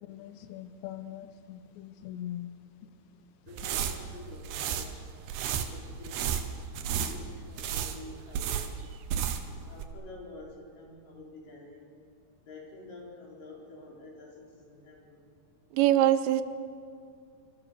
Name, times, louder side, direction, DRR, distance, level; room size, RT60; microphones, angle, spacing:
voice 1, 0.0-2.5, left 12 dB, 80° left, 3.1 m, -41 dB
voice 2, 3.5-5.1 5.6-6.5 6.9-8.9 9.7-11.9 12.4-15.2, left 3 dB, 50° left, 6.5 m, -48 dB
sound 1, 3.5-9.6 9.8-9.9, right 8 dB, 70° right, 3.3 m, -33 dB
voice 3, 15.7-16.4, right 12 dB, 90° right, 3.1 m, -22 dB
26.5 x 26.0 x 6.9 m
omnidirectional pair, 5.1 m